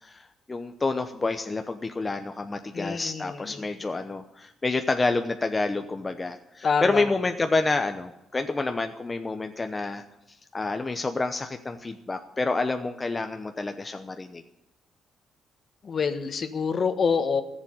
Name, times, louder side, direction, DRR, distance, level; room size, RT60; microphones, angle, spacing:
voice 1, 0.0-10.0 10.5-14.4, left 3 dB, 25° left, 6 dB, 0.9 m, -28 dB
voice 2, 2.7-3.3 6.6-7.0 15.8-17.4, left 5 dB, 45° left, 9 dB, 1.4 m, -26 dB
14.5 x 7.4 x 9.9 m, 0.91 s
cardioid pair, 90°, 0 cm